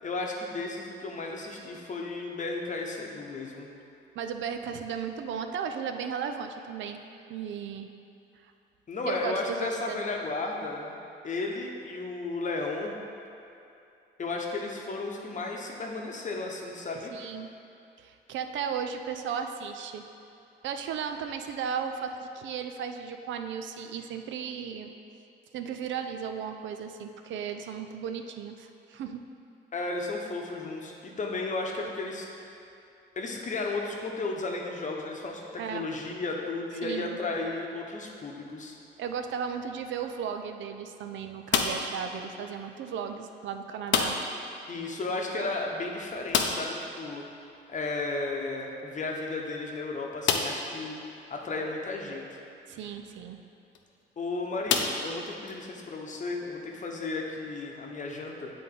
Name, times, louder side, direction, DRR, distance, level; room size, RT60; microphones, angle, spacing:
voice 1, 0.0-3.7 8.9-10.9 11.2-12.9 14.2-17.1 29.7-32.3 33.2-35.4 35.7-38.7 44.7-47.2 47.7-51.0 51.3-52.2 54.2-58.5, left 3 dB, 40° left, 0 dB, 0.9 m, -34 dB
voice 2, 4.2-7.0 7.3-7.9 8.4-8.5 9.0-10.0 17.1-17.5 18.0-20.0 20.6-24.9 25.5-29.2 35.6-35.9 36.8-37.2 39.0-44.2 52.7-53.4, right 7 dB, 70° right, 6 dB, 0.4 m, -35 dB
sound 1, 41.5-42.0 43.9-44.4 44.7-44.8 45.1-45.2 46.3-46.8 48.6-48.7 49.3-49.4 50.2-50.7 51.4-51.5 53.6-53.8 54.7-55.5, left 6 dB, 70° left, 0.5 m, -28 dB
7.6 x 3.8 x 3.7 m, 2.7 s
cardioid pair, 90°, 20 cm